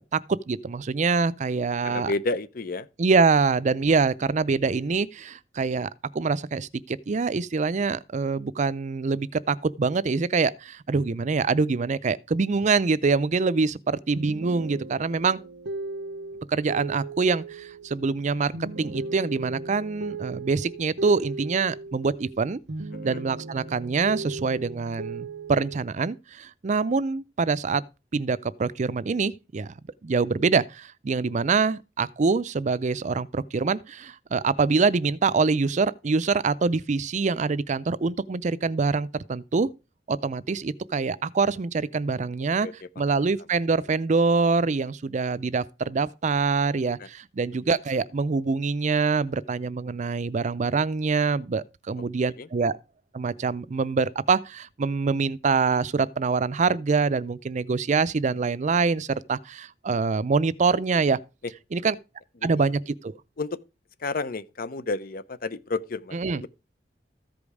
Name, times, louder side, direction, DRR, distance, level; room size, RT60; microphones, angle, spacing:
voice 1, 0.0-2.1 3.0-15.4 16.5-18.5 18.8-22.6 23.0-27.8 28.1-29.7 30.0-39.7 40.1-42.7 43.0-52.8 53.1-61.2 61.7-61.9 62.4-63.2 66.1-66.4, right 4 dB, 45° right, 0.5 m, -25 dB
voice 2, 1.8-2.9 22.9-23.2 42.6-43.2 47.0-47.1 52.0-52.1 52.4-52.5 61.8-61.9 62.4-62.5 63.4-63.6 64.0-66.5, left 3 dB, 55° left, 0.7 m, -31 dB
sound 1, 14.1-22.4 22.7-25.8, right 3 dB, 85° right, 0.8 m, -37 dB
14.0 x 5.2 x 4.7 m
head